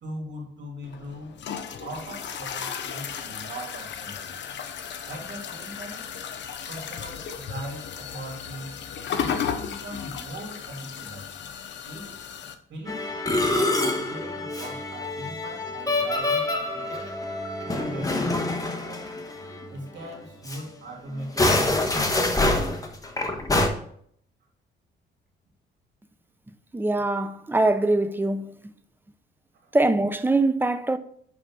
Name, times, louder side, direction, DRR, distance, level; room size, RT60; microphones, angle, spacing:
voice 1, 0.0-1.4 1.8-4.3 5.1-6.1 6.7-8.8 9.2-11.3 11.8-12.2 12.7-13.1 13.5-17.1 17.7-19.1 19.7-22.4 29.7-29.8, right 1 dB, 65° right, 3.2 m, -40 dB
sound 1, 0.8-12.5, left 7 dB, 65° left, 0.9 m, -35 dB
Musical instrument, 12.9-19.7 20.0-20.2 20.5-20.6 21.2-23.7, left 2 dB, 15° left, 1.3 m, -26 dB
voice 2, 26.7-28.7 29.7-31.0, right 2 dB, 10° right, 0.6 m, -23 dB
11.0 x 3.8 x 3.8 m
cardioid pair, 90°, 20 cm